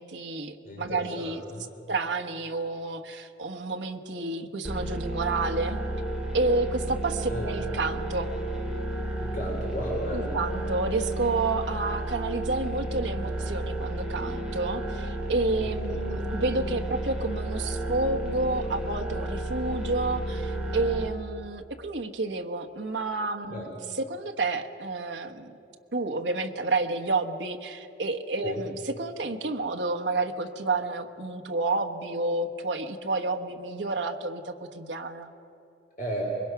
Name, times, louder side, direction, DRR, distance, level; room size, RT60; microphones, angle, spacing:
voice 1, 0.0-1.4 1.9-5.8 6.3-8.3 10.1-25.5 25.9-35.3, right 3 dB, 75° right, 4 dB, 1.2 m, -30 dB
voice 2, 0.6-1.6 7.3-7.5 9.2-10.4 15.9-16.0 23.5-23.7 28.4-28.6 36.0-36.2, equal, 45° left, -1 dB, 3.2 m, -34 dB
sound 1, 4.6-21.1, right 1 dB, 5° right, 2.2 m, -32 dB
25.0 x 21.5 x 5.9 m, 2.8 s
head